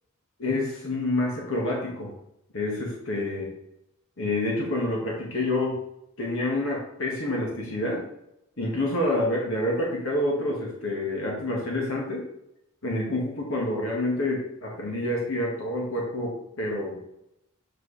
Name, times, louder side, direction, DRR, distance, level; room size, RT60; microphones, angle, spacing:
voice 1, 0.4-2.1 2.5-3.5 4.2-5.8 6.2-8.0 8.6-12.3 12.8-17.0, left 1 dB, 60° left, -2 dB, 1.7 m, -28 dB
7.5 x 4.8 x 3.3 m, 0.80 s
head